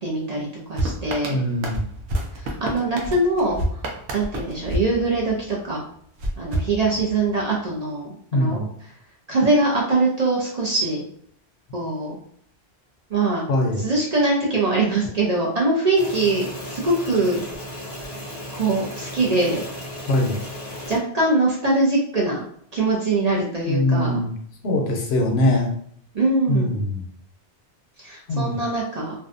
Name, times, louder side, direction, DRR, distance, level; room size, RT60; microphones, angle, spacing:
voice 1, 0.0-1.4 2.4-3.8 4.1-5.8 6.4-8.7 9.3-11.0 11.7-12.2 13.1-13.4 13.8-17.4 18.5-19.6 20.9-22.4 22.7-24.2 26.1-26.8 28.0-29.1, right 2 dB, 50° right, -4 dB, 0.5 m, -22 dB
sound 1, 0.8-5.6 6.2-7.4, right 1 dB, 85° right, 0.8 m, -29 dB
voice 2, 1.3-1.8 8.3-8.7 13.5-13.9 20.1-20.4 23.7-24.3 24.6-25.7 26.5-27.0 28.3-28.6, left 1 dB, 75° left, 2 dB, 0.8 m, -22 dB
sound 2, 16.0-21.0, left 1 dB, 45° left, 0.5 m, -35 dB
2.5 x 2.2 x 2.5 m, 0.63 s
omnidirectional pair, 1.1 m